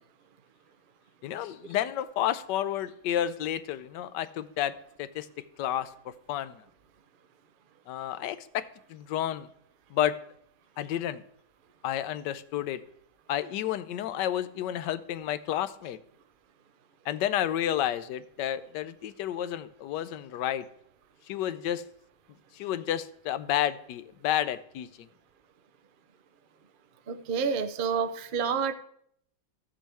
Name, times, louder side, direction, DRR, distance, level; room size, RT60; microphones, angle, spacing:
voice 1, 1.2-6.6 7.9-9.5 9.9-10.2 10.8-11.2 11.8-12.8 13.3-16.0 17.0-20.7 21.3-21.8 22.5-25.1, left 11 dB, 75° left, 13 dB, 1.2 m, -31 dB
voice 2, 27.1-28.7, right 6 dB, 85° right, 9 dB, 0.4 m, -28 dB
14.5 x 7.4 x 3.4 m, 0.69 s
omnidirectional pair, 1.9 m